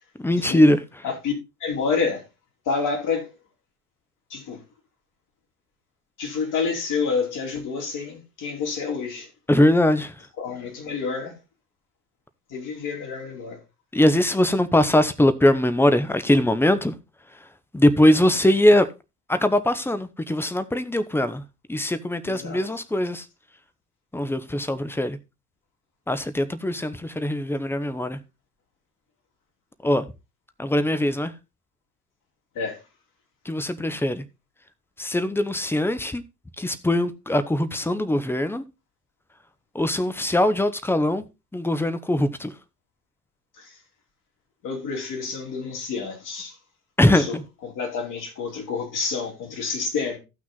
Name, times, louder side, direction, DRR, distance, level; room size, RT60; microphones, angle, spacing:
voice 1, 0.2-0.8 9.5-10.1 13.9-16.9 17.7-18.9 19.3-21.4 21.7-23.3 24.1-25.2 26.1-28.2 29.8-30.1 30.6-31.3 33.4-34.2 35.0-36.2 36.6-38.6 39.7-41.3 41.5-42.5 47.0-47.4, left 1 dB, 5° left, 1.0 m, -21 dB
voice 2, 1.6-2.2 2.6-3.3 4.3-4.6 6.2-9.3 10.4-11.3 12.5-13.6 22.2-22.6 32.5-32.8 43.6-43.8 44.6-46.6 47.1-47.4 47.6-50.2, left 5 dB, 45° left, 4.8 m, -28 dB
14.5 x 6.0 x 4.0 m
figure-of-eight pair, 65°, 43 cm